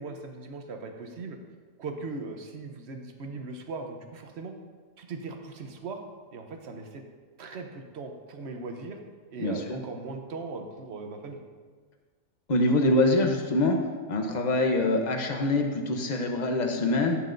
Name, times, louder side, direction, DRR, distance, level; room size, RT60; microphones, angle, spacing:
voice 1, 0.0-1.4 1.8-4.5 5.0-6.0 6.3-7.0 7.4-9.0 9.3-11.4, right 3 dB, 55° right, 4 dB, 0.8 m, -39 dB
voice 2, 9.4-9.8 12.5-13.8 14.1-17.2, left 2 dB, 45° left, 3 dB, 0.6 m, -24 dB
11.0 x 8.7 x 2.6 m, 1.5 s
omnidirectional pair, 1.8 m